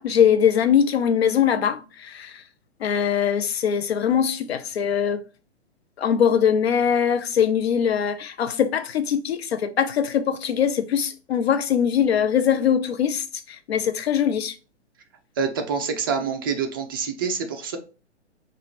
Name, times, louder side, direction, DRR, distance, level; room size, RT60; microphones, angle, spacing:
voice 1, 0.0-2.3 2.8-5.2 6.0-13.2 13.7-14.5, left 8 dB, 60° left, 0.6 m, -22 dB
voice 2, 15.4-17.8, right 5 dB, 20° right, 0.3 m, -26 dB
4.7 x 2.4 x 3.0 m
figure-of-eight pair, 115°, 35 cm